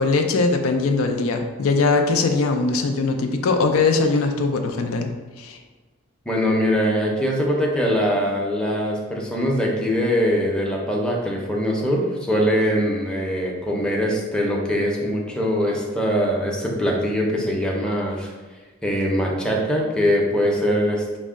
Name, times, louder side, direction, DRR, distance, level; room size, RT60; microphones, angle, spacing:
voice 1, 0.0-5.1 5.4-5.6, left 3 dB, 85° left, 4 dB, 0.4 m, -21 dB
voice 2, 6.3-18.3 18.8-21.2, equal, 5° left, -2 dB, 0.6 m, -22 dB
5.3 x 2.1 x 3.6 m, 1.3 s
head